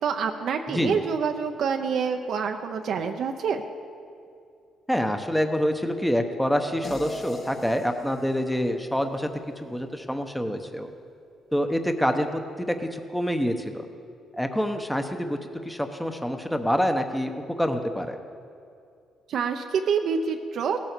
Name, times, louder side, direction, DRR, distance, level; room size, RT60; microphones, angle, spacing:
voice 1, 0.0-3.6 19.3-20.8, right 6 dB, 70° right, 4 dB, 0.7 m, -27 dB
voice 2, 0.7-1.0 4.9-9.3 9.6-10.9 11.5-13.8 14.3-15.4 15.6-17.3 17.6-18.2, equal, 5° left, 6 dB, 0.9 m, -26 dB
sound 1, 6.8-9.9, left 1 dB, 55° left, 2.0 m, -41 dB
16.5 x 7.5 x 6.8 m, 2.4 s
cardioid pair, 90°, 0 cm